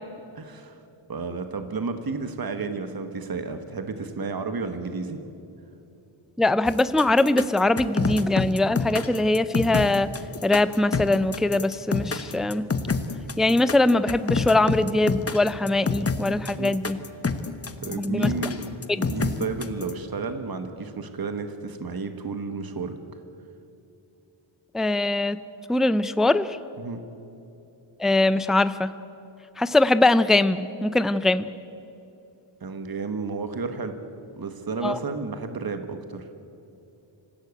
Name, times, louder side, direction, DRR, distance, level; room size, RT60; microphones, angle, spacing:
voice 1, 0.3-0.8 1.1-5.2 16.6-16.7 17.8-18.6 19.0-23.0 26.8-27.0 32.6-33.9 34.4-36.3, right 4 dB, 45° right, 8 dB, 1.5 m, -32 dB
voice 2, 6.4-10.1 10.4-12.7 13.4-17.0 17.9-18.3 18.9-19.1 24.7-25.4 25.7-26.6 28.0-28.9 29.6-31.5 34.8-35.0, left 2 dB, ahead, 13 dB, 0.5 m, -22 dB
sound 1, 6.7-19.9, left 4 dB, 30° left, 1.0 m, -27 dB
25.5 x 16.0 x 8.4 m, 2.8 s
wide cardioid pair, 135°, 49 cm